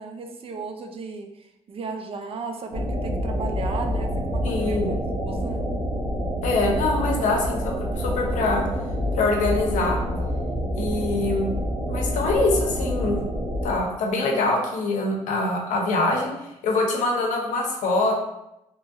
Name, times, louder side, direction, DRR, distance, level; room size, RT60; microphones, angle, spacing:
voice 1, 0.0-5.0 5.3-5.6, right 4 dB, 50° right, 5 dB, 0.4 m, -35 dB
sound 1, 2.7-13.8, equal, 85° right, 0.7 m, -27 dB
voice 2, 4.4-4.9 6.4-8.6 9.2-10.0 10.8-11.5 11.9-13.2 13.6-16.3 16.6-18.2, left 2 dB, 80° left, 0 dB, 0.6 m, -24 dB
2.9 x 2.3 x 2.6 m, 0.88 s
cardioid pair, 75°, 13 cm